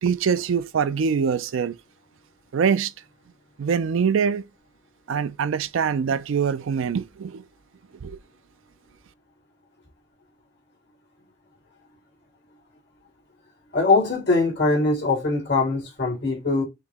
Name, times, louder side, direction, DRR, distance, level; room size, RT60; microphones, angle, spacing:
voice 1, 0.0-1.8 2.5-2.9 3.6-4.4 5.1-7.4 8.0-8.2, right 6 dB, 80° right, 0.4 m, -23 dB
voice 2, 13.7-16.6, left 3 dB, 55° left, 2.5 m, -22 dB
5.7 x 2.1 x 3.5 m
head